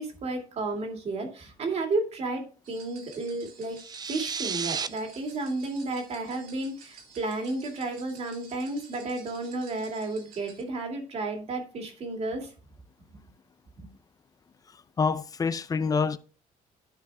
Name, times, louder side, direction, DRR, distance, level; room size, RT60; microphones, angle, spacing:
voice 1, 0.0-3.8 4.1-12.5 13.8-13.9, right 2 dB, 45° right, 2.3 m, -32 dB
sound 1, 2.6-10.6, right 5 dB, 80° right, 3.3 m, -51 dB
sound 2, 3.7-4.9, right 6 dB, 25° right, 0.5 m, -32 dB
voice 2, 14.7-16.2, left 5 dB, 25° left, 0.6 m, -27 dB
12.5 x 4.6 x 3.4 m
cardioid pair, 130°, 15 cm